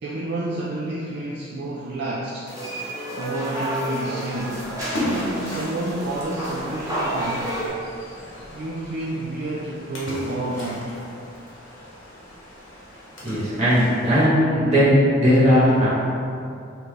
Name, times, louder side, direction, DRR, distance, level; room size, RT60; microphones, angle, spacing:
voice 1, 0.0-2.5 3.1-4.6 5.0-7.5 8.5-11.0, right 1 dB, 60° right, -5 dB, 0.4 m, -29 dB
sound 1, 2.5-7.7, right 1 dB, 20° right, 0.7 m, -30 dB
Splash splatter, 4.3-14.2, left 1 dB, 85° left, 1.1 m, -36 dB
voice 2, 13.2-15.9, equal, 35° right, -10 dB, 1.3 m, -18 dB
4.0 x 2.8 x 3.2 m, 2.5 s
head